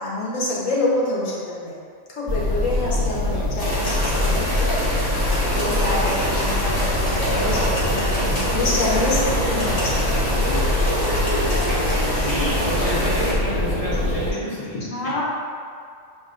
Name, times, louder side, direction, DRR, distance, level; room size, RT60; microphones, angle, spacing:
voice 1, 0.0-1.8 2.1-4.5 5.3-8.0 8.5-10.2 11.5-11.6 12.1-12.4 14.7-15.2, left 1 dB, 90° left, -6 dB, 1.3 m, -26 dB
sound 1, 2.3-14.3, left 1 dB, 35° left, 1.5 m, -23 dB
sound 2, 3.6-13.3, equal, 20° left, 1.0 m, -26 dB
voice 2, 10.3-10.9 12.2-14.7 15.0-15.1, equal, 35° right, -11 dB, 0.7 m, -31 dB
6.9 x 2.4 x 2.4 m, 2.2 s
omnidirectional pair, 1.3 m